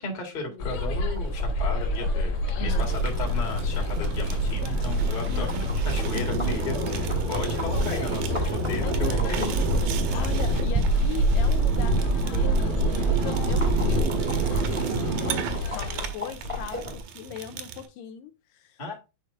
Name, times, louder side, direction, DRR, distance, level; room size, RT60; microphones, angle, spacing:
voice 1, 0.0-9.4 10.1-10.3 18.8-19.0, left 3 dB, 30° left, 0 dB, 0.9 m, -35 dB
sound 1, 0.6-16.1, left 8 dB, 60° left, 2.5 m, -34 dB
sound 2, 0.6-17.0, right 2 dB, 35° right, 0.5 m, -27 dB
voice 2, 2.6-2.9 5.3-5.6 6.1-7.0 8.8-9.5 10.1-15.9 16.1-16.9 17.1-18.8, left 9 dB, 80° left, 6 dB, 2.2 m, -39 dB
Fire, 2.7-17.9, right 5 dB, 75° right, 2.3 m, -32 dB
9.7 x 4.5 x 2.6 m, 0.28 s
omnidirectional pair, 4.2 m